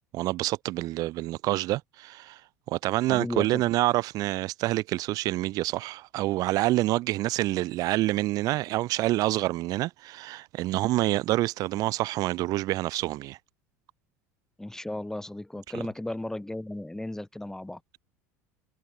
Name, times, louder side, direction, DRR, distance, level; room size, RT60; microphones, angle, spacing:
voice 1, 0.1-2.4 2.7-13.4, right 17 dB, 50° right, 1.1 m, -27 dB
voice 2, 3.1-3.6 14.6-17.8, left 1 dB, 5° left, 3.7 m, -35 dB
figure-of-eight pair, 75°, 8 cm